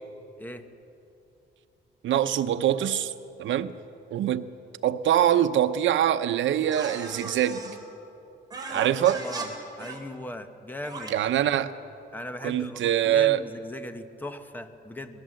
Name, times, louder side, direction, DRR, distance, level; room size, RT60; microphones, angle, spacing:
voice 1, 2.0-3.1 3.4-3.7 4.1-4.5 4.8-7.8 8.7-9.2 11.1-11.7 12.4-13.4, right 11 dB, 85° right, 0.8 m, -24 dB
sound 1, 6.7-7.8 8.5-9.5 9.8-10.0 10.8-11.1, right 3 dB, 20° right, 3.1 m, -37 dB
voice 2, 8.7-9.5 9.8-11.2 12.1-15.2, left 1 dB, 10° left, 1.0 m, -38 dB
20.5 x 17.0 x 7.8 m
wide cardioid pair, 155°, 19 cm